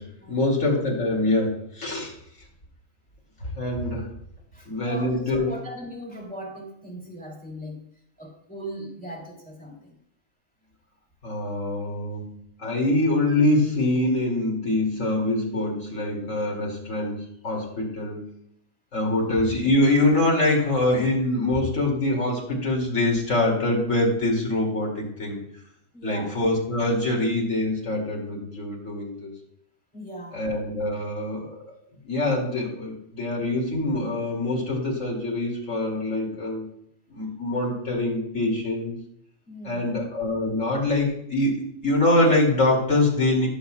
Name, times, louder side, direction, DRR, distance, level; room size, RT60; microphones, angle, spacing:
voice 1, 0.0-2.1 3.4-4.1 4.7-5.5 11.2-18.2 18.9-25.4 26.0-29.3 30.3-31.6 32.0-36.7 37.1-39.0 39.6-43.5, left 2 dB, 70° left, -2 dB, 2.9 m, -24 dB
voice 2, 4.5-7.9 8.2-10.0 19.1-19.3 25.9-26.4 29.9-30.4 39.5-39.9, right 1 dB, 5° left, -3 dB, 2.5 m, -39 dB
16.5 x 6.9 x 2.3 m, 0.75 s
omnidirectional pair, 1.4 m